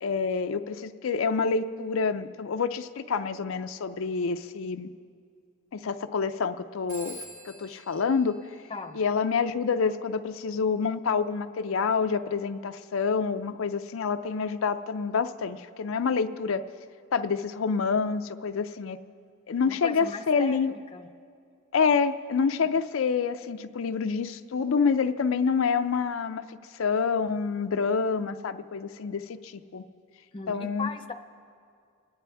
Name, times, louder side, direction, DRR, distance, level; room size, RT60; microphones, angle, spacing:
voice 1, 0.0-4.9 5.7-7.2 7.5-8.4 8.9-16.6 17.1-19.0 19.5-20.7 21.7-26.4 26.8-29.8 30.5-30.9, left 5 dB, 85° left, 8 dB, 0.5 m, -27 dB
Telephone, 6.9-9.4, right 2 dB, 65° right, 2.3 m, -47 dB
voice 2, 19.6-20.6 20.9-21.1 30.3-31.1, left 4 dB, 25° left, 5 dB, 0.7 m, -37 dB
27.5 x 9.8 x 3.4 m, 2.3 s
head